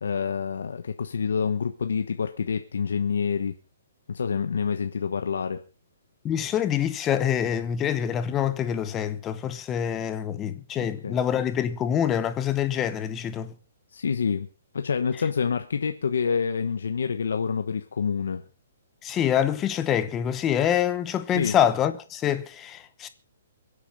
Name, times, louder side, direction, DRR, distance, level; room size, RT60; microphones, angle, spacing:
voice 1, 0.0-3.5 4.1-5.6 10.8-11.2 13.9-14.5 14.7-18.4 21.3-21.6, left 6 dB, 85° left, 1.2 m, -27 dB
voice 2, 6.2-13.5 19.0-23.1, left 9 dB, 15° left, 0.9 m, -26 dB
23.0 x 8.4 x 5.4 m
hypercardioid pair, 175°, 0 cm